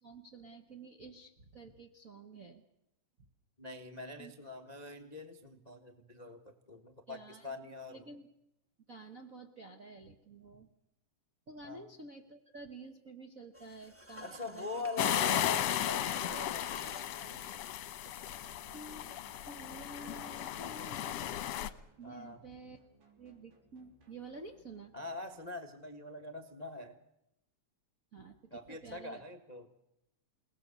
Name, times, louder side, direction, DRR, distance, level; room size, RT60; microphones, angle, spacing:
voice 1, 0.0-2.6 4.2-4.3 7.1-7.6 7.9-8.3 8.9-10.7 11.5-14.7 15.0-15.4 18.3-19.0 19.4-21.2 22.0-22.8 23.2-24.9 28.1-29.2, right 3 dB, 50° right, 3 dB, 1.0 m, -50 dB
voice 2, 3.6-8.0 11.6-11.8 14.2-17.5 22.0-22.4 24.9-27.0 28.5-29.7, left 3 dB, 30° left, 6 dB, 0.7 m, -43 dB
sound 1, 13.5-17.1 20.0-20.1, equal, 10° right, 0.6 m, -48 dB
sound 2, 15.0-21.7, left 12 dB, 65° left, 1.9 m, -35 dB
sound 3, 18.1-25.5, right 2 dB, 85° right, 5.0 m, -66 dB
29.0 x 18.5 x 6.9 m, 0.85 s
omnidirectional pair, 3.5 m